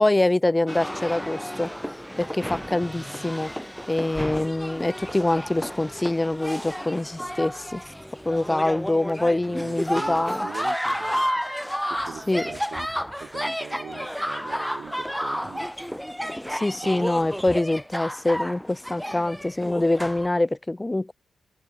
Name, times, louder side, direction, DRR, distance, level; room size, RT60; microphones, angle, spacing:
voice 1, 0.0-1.7 2.2-3.5 3.9-7.8 8.3-10.5 12.3-12.5 16.5-21.1, left 2 dB, 20° left, 0.8 m, -24 dB
sound 1, 0.7-20.3, equal, ahead, 1.5 m, -31 dB
voice 2, 9.5-11.3 11.9-12.9 13.2-15.7 16.8-17.1, right 8 dB, 70° right, 0.8 m, -41 dB
supercardioid pair, 45°, 0 cm